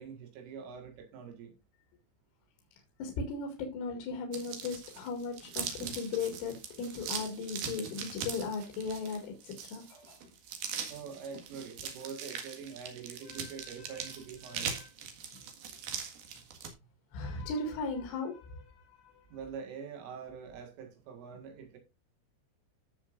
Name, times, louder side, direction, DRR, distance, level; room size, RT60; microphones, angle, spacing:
voice 1, 0.0-1.6 10.9-14.8 19.3-21.8, right 6 dB, 80° right, 4.3 m, -45 dB
voice 2, 3.0-10.2 13.2-14.1 14.5-14.9 17.1-19.3, left 4 dB, 75° left, 4.7 m, -38 dB
sound 1, 4.3-16.7, right 7 dB, 60° right, 3.3 m, -41 dB
14.0 x 7.3 x 2.5 m
omnidirectional pair, 5.7 m